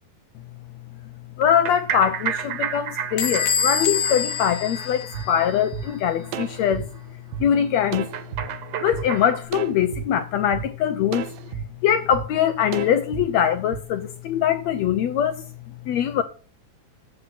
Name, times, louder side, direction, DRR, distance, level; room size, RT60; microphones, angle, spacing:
voice 1, 1.4-6.9 7.4-8.1 8.8-11.3 11.8-15.4 15.9-16.2, left 9 dB, 80° left, 1.5 m, -22 dB
sound 1, 1.4-6.0 6.2-6.3 6.6-6.7 7.0-7.1 8.1-9.5, right 9 dB, 60° right, 1.9 m, -32 dB
Bell / Squeak, 3.2-5.7, left 7 dB, 55° left, 1.5 m, -26 dB
sound 2, 5.1-5.3 5.7-5.9 6.3-7.5 7.9-8.5 8.9-9.1 9.5-10.1 10.5-10.7 11.1-11.7 12.1-12.3 12.7-13.3 13.7-13.8, right 9 dB, 90° right, 2.6 m, -32 dB
12.0 x 7.6 x 6.0 m
omnidirectional pair, 4.0 m